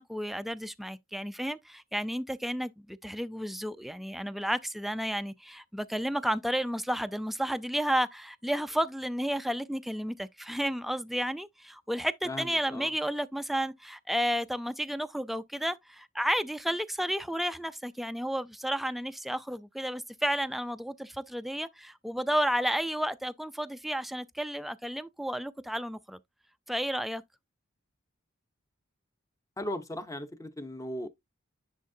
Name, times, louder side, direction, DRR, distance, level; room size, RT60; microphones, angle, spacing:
voice 1, 0.0-26.2 26.7-27.2, equal, ahead, 0.4 m, -32 dB
voice 2, 12.2-12.9 29.6-31.1, left 1 dB, 15° left, 0.7 m, -37 dB
10.0 x 4.2 x 2.7 m
head